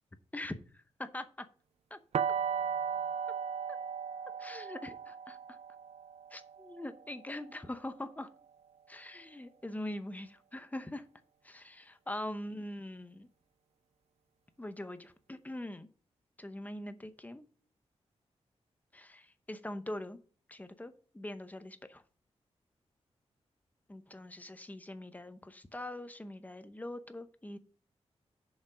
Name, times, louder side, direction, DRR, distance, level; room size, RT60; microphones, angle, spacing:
voice 1, 0.3-1.5 1.9-2.0 3.7-3.8 4.4-5.6 6.3-8.3 8.9-11.1 11.4-13.3 14.6-15.9 16.4-17.4 18.9-20.2 20.5-22.0 23.9-27.6, left 1 dB, 15° left, 10 dB, 0.8 m, -43 dB
sound 1, 2.1-8.0, right 7 dB, 65° right, 0.4 m, -37 dB
7.1 x 5.1 x 5.1 m, 0.43 s
wide cardioid pair, 105°, 11 cm